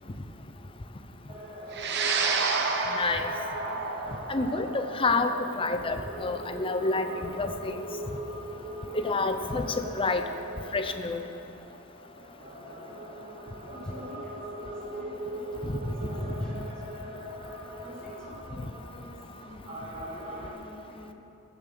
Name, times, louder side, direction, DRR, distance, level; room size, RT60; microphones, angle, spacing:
sound 1, 1.3-20.5, right 1 dB, 30° right, 1.9 m, -41 dB
sound 2, 1.7-10.3, right 4 dB, 50° right, 0.9 m, -32 dB
voice 1, 2.9-3.3 4.3-7.9 8.9-10.2 10.7-11.2 15.6-15.8, left 3 dB, 25° left, 8 dB, 0.6 m, -28 dB
voice 2, 13.3-21.1, left 2 dB, 5° left, -6 dB, 2.2 m, -49 dB
15.5 x 7.2 x 6.7 m, 2.8 s
head